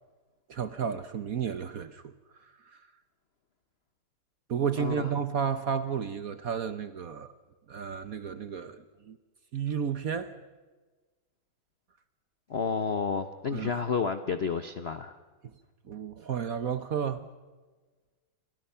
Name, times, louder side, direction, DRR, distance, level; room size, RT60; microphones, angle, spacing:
voice 1, 0.5-2.1 2.4-2.8 4.5-7.3 7.7-9.2 9.5-10.3 13.5-13.8 15.9-17.3, right 7 dB, 55° right, 12 dB, 1.0 m, -32 dB
voice 2, 4.8-5.1 12.5-15.2, left 5 dB, 55° left, 10 dB, 0.7 m, -30 dB
29.5 x 25.5 x 5.7 m, 1.3 s
omnidirectional pair, 2.3 m